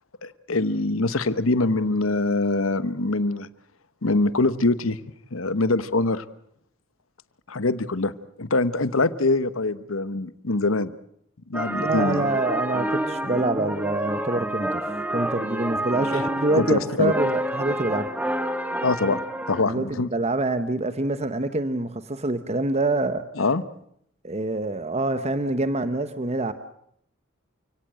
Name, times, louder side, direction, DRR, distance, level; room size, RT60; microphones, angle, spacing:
voice 1, 0.2-3.5 4.0-5.0 5.3-6.2 7.5-8.1 8.4-10.9 11.5-12.2 16.5-17.1 18.8-19.2 19.5-20.1 23.4-23.6, left 2 dB, 80° left, 15 dB, 1.1 m, -23 dB
sound 1, 11.5-19.6, right 1 dB, 5° right, 1.6 m, -28 dB
voice 2, 11.8-18.1 19.7-23.2 24.2-26.5, right 2 dB, 30° right, 11 dB, 0.9 m, -26 dB
29.0 x 17.5 x 7.8 m, 0.71 s
head